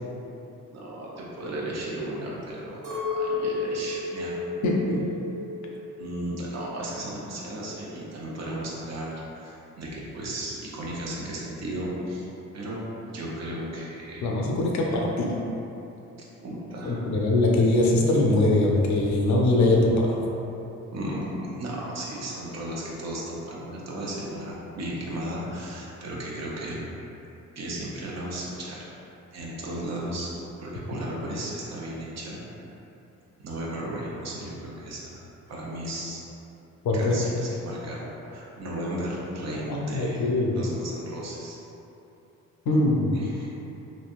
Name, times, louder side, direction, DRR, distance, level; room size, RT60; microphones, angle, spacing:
voice 1, 0.7-4.4 6.0-12.3 12.5-14.3 16.4-17.1 20.9-26.8 27.6-28.9 29.3-30.3 30.6-32.6 33.4-35.2 35.5-36.2 36.9-40.2 40.5-41.6 42.7-42.8 43.1-43.5, right 1 dB, 60° right, -4 dB, 0.7 m, -35 dB
Chink clink, 2.8-7.2 7.5-8.3, left 3 dB, 85° right, 1.1 m, -33 dB
voice 2, 4.6-4.9 14.2-15.3 16.8-20.1 36.8-37.2 39.7-40.5 42.7-43.1, left 2 dB, 70° left, -1 dB, 0.6 m, -22 dB
3.1 x 2.6 x 2.4 m, 2.9 s
cardioid pair, 90°, 30 cm